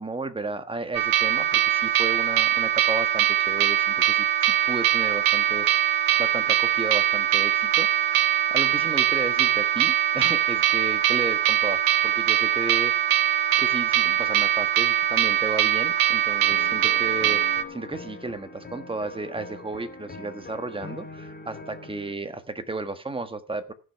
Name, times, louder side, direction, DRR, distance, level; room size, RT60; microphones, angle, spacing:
voice 1, 0.0-7.9 8.5-17.4 17.7-23.7, right 3 dB, 15° right, 9 dB, 1.5 m, -33 dB
sound 1, 0.9-17.6, right 11 dB, 60° right, 1.1 m, -22 dB
sound 2, 16.5-22.1, left 3 dB, 25° left, 2.2 m, -42 dB
15.0 x 6.2 x 5.7 m, 0.37 s
cardioid pair, 105°, 38 cm